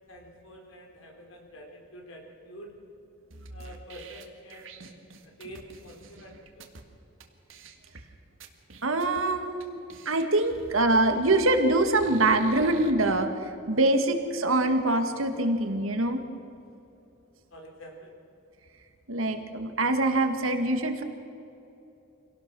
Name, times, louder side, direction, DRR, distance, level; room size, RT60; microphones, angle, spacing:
voice 1, 0.1-2.7 3.5-6.7 17.5-18.1, equal, 80° left, 1 dB, 4.5 m, -47 dB
sound 1, 3.3-6.8 7.2-7.3 7.5-8.0 8.4-9.2 9.6-9.7 9.9-12.9, right 3 dB, 70° right, 1.9 m, -47 dB
voice 2, 8.8-9.8 10.1-16.2 19.1-21.0, right 2 dB, 85° right, 6 dB, 2.0 m, -24 dB
25.5 x 18.0 x 6.2 m, 2.8 s
head